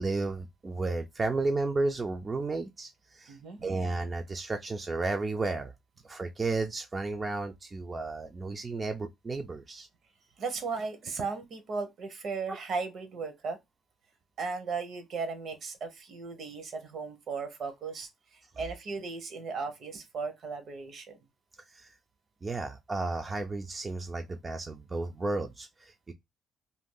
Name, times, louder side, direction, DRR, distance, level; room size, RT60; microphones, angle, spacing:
voice 1, 0.0-5.7 6.0-9.9 21.7-21.9 22.4-26.1, right 3 dB, 30° right, 0.4 m, -33 dB
voice 2, 3.3-3.7 10.4-13.6 14.4-21.2, right 4 dB, 65° right, 0.9 m, -36 dB
2.6 x 2.3 x 3.6 m
cardioid pair, 90°, 0 cm